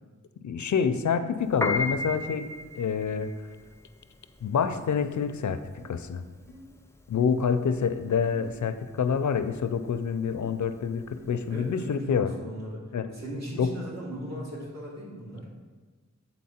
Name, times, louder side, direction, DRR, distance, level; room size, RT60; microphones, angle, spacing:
voice 1, 0.4-2.5 2.7-3.3 4.4-6.2 7.1-12.3 12.9-13.1 13.6-13.8, left 6 dB, 80° left, 11 dB, 0.4 m, -27 dB
Piano, 1.5-11.9, left 2 dB, 10° left, 0.5 m, -36 dB
sound 1, 5.0-5.2 5.8-5.9 6.5-6.6 7.1-7.3 8.3-8.5 9.5-9.6 10.3-10.5 11.1-11.3 12.0-12.2, left 1 dB, 35° right, 1.3 m, -49 dB
voice 2, 11.5-12.8 13.1-15.5, equal, 65° right, -6 dB, 2.3 m, -38 dB
8.4 x 4.1 x 4.2 m, 1.4 s
wide cardioid pair, 80°, 29 cm